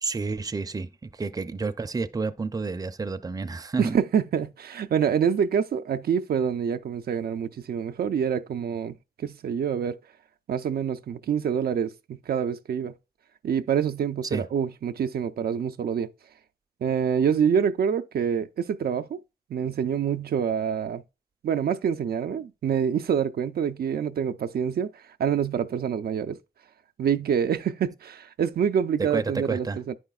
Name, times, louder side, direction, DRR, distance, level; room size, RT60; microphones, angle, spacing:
voice 1, 0.0-4.0 14.2-14.5 29.0-29.8, right 4 dB, 25° right, 0.4 m, -30 dB
voice 2, 3.8-10.0 10.5-12.9 13.4-16.1 16.8-19.2 19.5-21.0 21.4-24.9 25.2-26.4 27.0-29.9, right 7 dB, 85° right, 0.4 m, -26 dB
10.0 x 4.9 x 2.3 m
wide cardioid pair, 85°, 16 cm